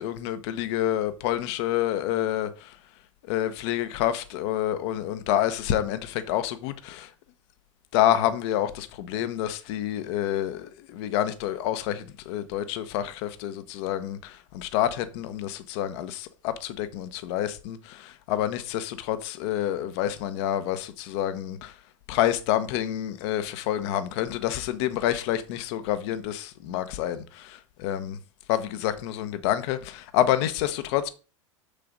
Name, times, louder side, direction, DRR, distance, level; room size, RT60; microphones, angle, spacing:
voice 1, 0.0-2.8 3.3-7.1 7.9-21.7 22.1-28.2 28.5-31.1, left 12 dB, 55° left, 1.0 m, -28 dB
6.8 x 6.7 x 3.9 m
hypercardioid pair, 95°, 16 cm